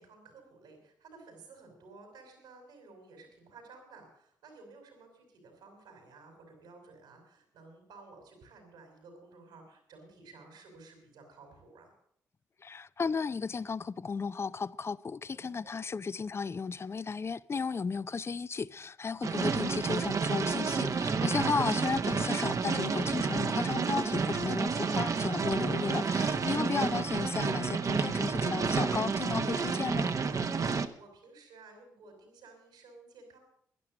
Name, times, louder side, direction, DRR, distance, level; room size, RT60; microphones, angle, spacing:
voice 1, 0.0-11.9 15.3-15.8 26.5-27.0 30.5-33.4, right 3 dB, 85° right, 5.3 m, -54 dB
voice 2, 12.6-30.1, left 5 dB, 35° left, 0.5 m, -34 dB
sound 1, 19.2-30.9, right 5 dB, 50° right, 1.0 m, -30 dB
11.5 x 10.5 x 7.6 m
supercardioid pair, 55°, 7 cm